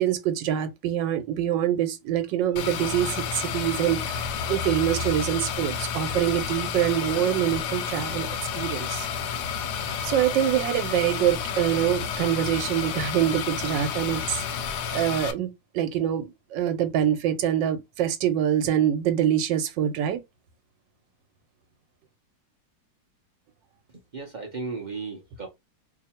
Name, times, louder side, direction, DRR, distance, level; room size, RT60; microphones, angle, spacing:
voice 1, 0.0-8.3 8.5-9.1 10.0-14.4 14.9-15.5 15.7-16.3 16.5-20.2, right 11 dB, 85° right, 1.4 m, -25 dB
sound 1, 2.6-15.3, left 6 dB, 75° left, 1.1 m, -31 dB
voice 2, 24.1-25.5, right 4 dB, 55° right, 0.5 m, -35 dB
2.8 x 2.6 x 4.2 m
omnidirectional pair, 1.9 m